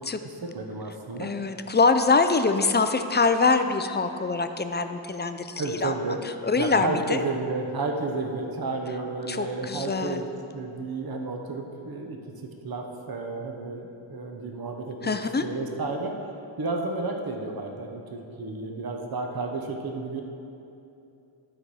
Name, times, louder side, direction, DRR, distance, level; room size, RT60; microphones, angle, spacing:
voice 1, 0.0-1.3 5.6-10.3 10.5-12.2 12.6-15.1 15.4-16.1 16.6-20.2, right 3 dB, 45° right, 3 dB, 0.9 m, -32 dB
voice 2, 1.2-5.9 6.4-7.2 9.3-10.2 15.0-15.4, left 4 dB, 20° left, 8 dB, 0.4 m, -24 dB
12.5 x 4.2 x 4.7 m, 2.8 s
cardioid pair, 60°, 49 cm